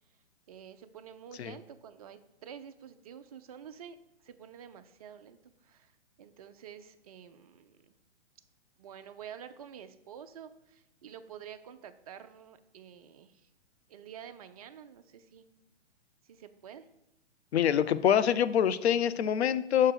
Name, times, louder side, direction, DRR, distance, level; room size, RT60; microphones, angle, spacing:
voice 1, 0.5-4.0 4.2-5.4 5.6-5.9 6.2-8.0 8.8-13.5 13.9-15.5 16.2-16.9, right 8 dB, 35° right, 9 dB, 0.5 m, -49 dB
voice 2, 17.5-19.9, left 9 dB, 65° left, 14 dB, 0.6 m, -25 dB
5.9 x 4.6 x 6.3 m, 0.85 s
hypercardioid pair, 135°, 35 cm